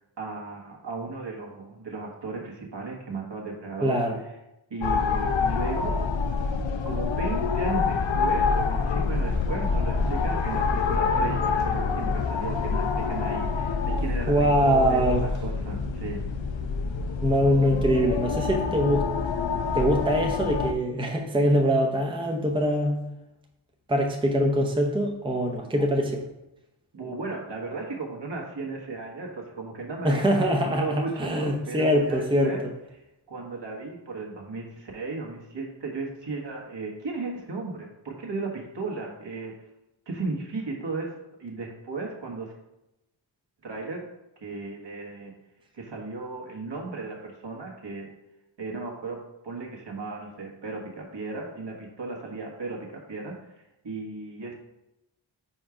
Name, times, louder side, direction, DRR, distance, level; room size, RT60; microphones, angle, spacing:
voice 1, 0.0-4.0 4.7-6.0 6.8-16.2 25.8-25.9 26.9-32.6 33.3-39.6 40.1-41.1 41.4-42.5 43.6-44.0 44.4-45.3 45.7-48.1 48.6-49.2 49.4-53.3 53.8-54.5, right 3 dB, 60° right, -1 dB, 1.4 m, -35 dB
voice 2, 3.8-4.2 14.3-15.2 17.2-19.1 19.7-23.0 23.9-26.2 30.0-32.5, equal, 10° right, 1 dB, 0.7 m, -23 dB
sound 1, 4.8-20.7, left 4 dB, 70° left, 0.6 m, -26 dB
4.6 x 4.4 x 4.9 m, 0.90 s
wide cardioid pair, 60°, 48 cm